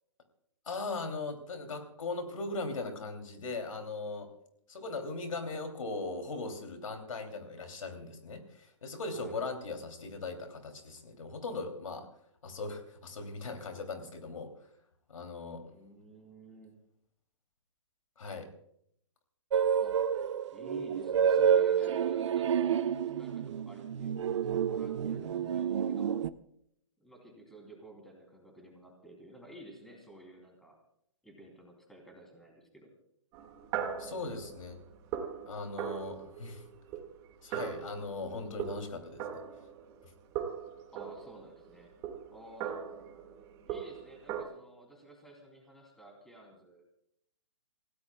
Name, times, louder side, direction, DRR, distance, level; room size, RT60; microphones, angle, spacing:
voice 1, 0.7-4.3 4.7-12.1 12.4-14.5 15.1-15.6 18.2-18.5 34.0-34.8 35.5-36.6 37.4-39.4, left 3 dB, 85° left, 5 dB, 3.0 m, -39 dB
voice 2, 15.6-16.8 19.8-20.0 20.5-22.8 23.2-26.2 27.0-30.8 31.2-32.9 40.9-41.9 42.3-42.8 43.7-46.8, right 1 dB, ahead, 1 dB, 3.1 m, -52 dB
sound 1, 19.5-26.3, right 8 dB, 65° right, 0.7 m, -29 dB
sound 2, 33.3-40.1 40.4-44.4, right 8 dB, 25° right, 2.0 m, -40 dB
29.0 x 16.5 x 2.3 m, 0.72 s
hypercardioid pair, 155°, 17 cm